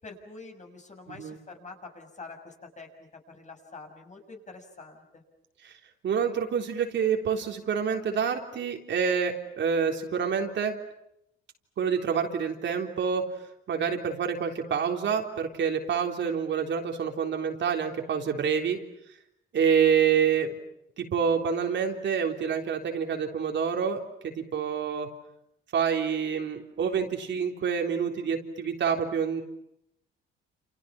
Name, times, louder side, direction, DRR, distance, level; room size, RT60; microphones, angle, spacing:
voice 1, 0.0-3.1 3.3-5.2, left 3 dB, 35° left, 4 dB, 6.6 m, -46 dB
voice 2, 6.0-10.8 11.8-13.3 13.7-18.8 19.5-20.5 21.0-25.1 25.7-29.4, right 7 dB, 60° right, 3 dB, 3.6 m, -27 dB
30.0 x 29.0 x 6.0 m, 0.78 s
cardioid pair, 105°, 21 cm